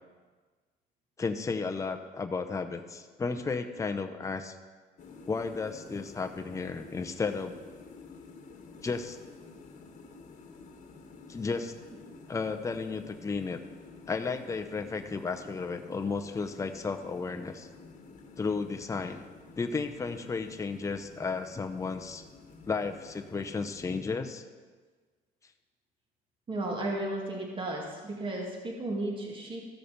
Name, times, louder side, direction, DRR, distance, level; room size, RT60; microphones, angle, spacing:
voice 1, 1.2-4.5 5.3-7.6 8.8-9.2 11.3-11.7 12.3-13.6 14.1-17.7 18.4-19.2 19.6-22.2 22.6-24.4, left 4 dB, 20° left, 6 dB, 0.7 m, -33 dB
sound 1, 5.0-24.0, left 4 dB, 45° left, 1.3 m, -51 dB
voice 2, 26.5-29.6, right 1 dB, 30° right, -1 dB, 2.2 m, -34 dB
14.5 x 6.7 x 5.2 m, 1.4 s
cardioid pair, 110°, 17 cm